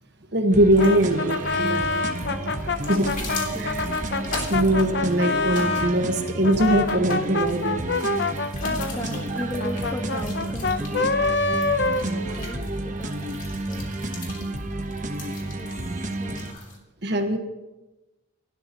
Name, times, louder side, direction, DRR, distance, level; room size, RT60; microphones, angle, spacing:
voice 1, 0.3-2.2 2.6-3.1 3.6-3.9 4.5-8.0 12.0-12.4 15.4-15.5 17.0-17.4, right 1 dB, 55° right, 1.5 m, -22 dB
sound 1, 0.5-16.5, right 1 dB, 40° right, 1.2 m, -31 dB
sound 2, 0.7-16.8, left 3 dB, 40° left, 3.1 m, -41 dB
Brass instrument, 0.8-6.0 6.4-12.7, left 3 dB, 55° left, 0.8 m, -26 dB
voice 2, 3.2-4.1 8.9-11.2 12.4-13.9 15.6-15.7 16.1-16.4, equal, 15° left, 1.5 m, -37 dB
28.5 x 12.5 x 3.0 m
head